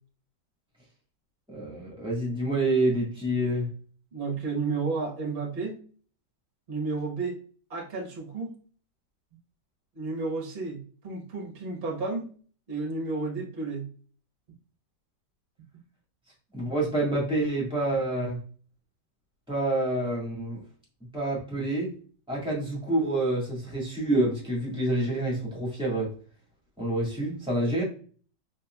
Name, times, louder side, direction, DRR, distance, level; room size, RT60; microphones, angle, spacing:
voice 1, 1.5-3.7 16.5-18.4 19.5-20.6 21.1-21.9 22.3-26.1 26.8-27.8, right 1 dB, 5° right, -4 dB, 1.7 m, -27 dB
voice 2, 4.1-5.8 6.7-7.4 7.7-8.5 9.9-12.3 12.7-13.9, right 3 dB, 40° right, 1 dB, 1.1 m, -32 dB
4.2 x 3.9 x 2.2 m, 0.42 s
omnidirectional pair, 1.9 m